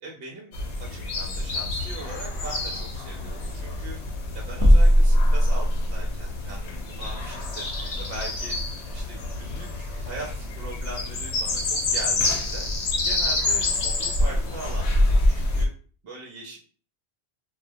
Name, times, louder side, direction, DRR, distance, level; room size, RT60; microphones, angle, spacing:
voice 1, 0.0-4.0 4.3-8.6 8.9-12.7 13.0-15.7 16.0-16.6, right 2 dB, 65° right, -2 dB, 0.8 m, -40 dB
sound 1, 0.5-15.7, left 2 dB, 80° left, 0.9 m, -27 dB
sound 2, 4.6-6.2, equal, 15° left, 0.8 m, -17 dB
2.2 x 2.1 x 2.6 m, 0.40 s
omnidirectional pair, 1.1 m